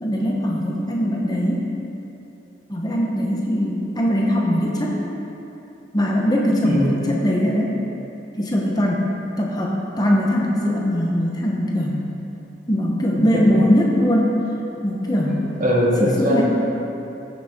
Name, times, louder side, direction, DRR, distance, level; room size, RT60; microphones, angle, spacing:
voice 1, 0.0-1.7 2.7-5.0 5.9-7.8 8.4-9.1 9.4-12.0 12.7-14.4 14.8-15.4 16.0-16.4, equal, 20° left, -2 dB, 0.9 m, -21 dB
voice 2, 6.6-7.1 13.1-13.4 15.2-16.4, equal, 45° right, -5 dB, 1.8 m, -21 dB
14.5 x 6.5 x 3.6 m, 2.9 s
head